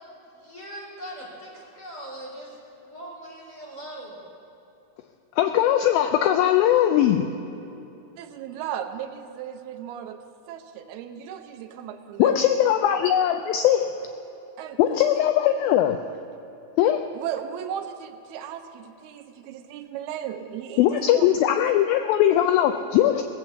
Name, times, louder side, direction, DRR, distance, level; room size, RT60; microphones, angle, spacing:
voice 1, 0.4-2.5 2.8-4.2, right 1 dB, 25° left, -6 dB, 3.2 m, -40 dB
voice 2, 5.4-7.3 12.2-14.0 14.8-16.0 16.8-17.1 20.8-23.2, left 11 dB, 85° left, 7 dB, 2.1 m, -20 dB
voice 3, 8.2-10.2 10.5-12.3 14.6-14.8 17.1-21.3, right 9 dB, 80° right, 7 dB, 2.6 m, -36 dB
18.0 x 8.1 x 7.1 m, 2.9 s
omnidirectional pair, 4.6 m